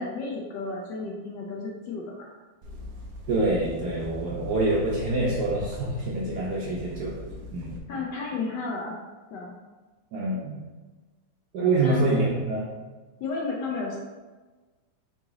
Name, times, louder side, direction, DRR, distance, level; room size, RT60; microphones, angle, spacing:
voice 1, 0.0-2.3 7.9-9.0 9.3-9.5 11.8-12.0 13.2-14.0, left 3 dB, 70° left, -2 dB, 1.1 m, -33 dB
sound 1, 2.6-7.8, left 2 dB, 85° right, 0.7 m, -41 dB
voice 2, 3.3-7.1 7.5-7.8 10.1-10.6 11.5-12.7, right 2 dB, 65° right, -4 dB, 1.0 m, -26 dB
4.0 x 2.9 x 3.6 m, 1.3 s
omnidirectional pair, 2.3 m